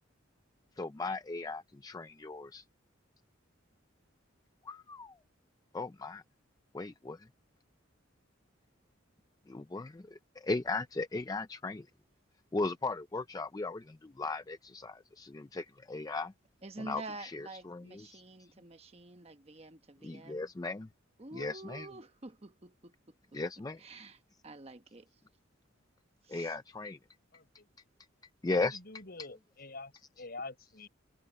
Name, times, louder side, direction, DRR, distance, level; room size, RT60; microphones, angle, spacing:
voice 1, 0.8-2.6 4.6-5.2 5.7-6.2 6.7-7.3 9.5-11.9 12.5-16.3 16.8-18.5 20.0-20.9 21.3-21.9 23.3-23.8 26.3-27.0 28.4-28.8, left 3 dB, 20° left, 0.4 m, -37 dB
voice 2, 16.6-20.5 21.2-23.1 23.8-24.2 24.4-25.1 26.2-26.5, right 2 dB, 30° right, 1.1 m, -48 dB
voice 3, 27.3-27.7 28.7-30.9, left 3 dB, 50° left, 6.5 m, -46 dB
open air
head